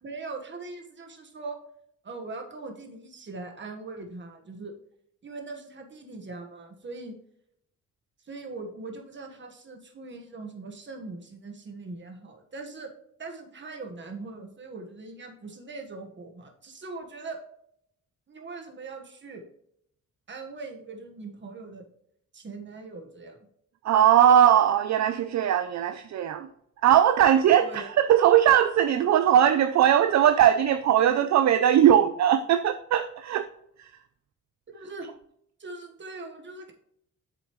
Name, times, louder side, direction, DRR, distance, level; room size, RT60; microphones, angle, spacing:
voice 1, 0.0-1.6 2.0-4.8 5.2-7.2 8.2-12.9 13.2-17.4 18.3-19.4 20.3-21.8 22.3-23.4 27.6-27.9 34.7-35.1 35.6-36.7, right 3 dB, 35° right, 3 dB, 1.4 m, -41 dB
voice 2, 23.8-26.5 26.8-33.5 33.8-33.9, right 10 dB, 60° right, 10 dB, 0.5 m, -20 dB
8.0 x 6.9 x 3.1 m, 0.73 s
cardioid pair, 120°, 31 cm